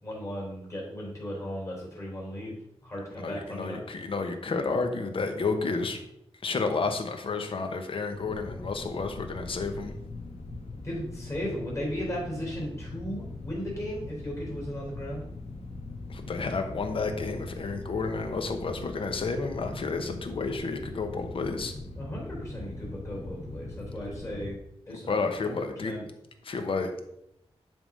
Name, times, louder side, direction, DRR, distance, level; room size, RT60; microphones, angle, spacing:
voice 1, 0.0-2.5 2.8-3.8 10.8-15.2 21.9-24.6 24.9-26.1, equal, 30° left, -4 dB, 3.4 m, -36 dB
voice 2, 3.2-6.0 6.4-9.9 16.1-21.7 24.9-25.9 26.4-26.9, left 4 dB, 55° left, 6 dB, 1.0 m, -31 dB
sound 1, 8.1-24.6, left 2 dB, 80° left, 1.4 m, -41 dB
10.5 x 3.6 x 5.4 m, 0.80 s
wide cardioid pair, 180°, 11 cm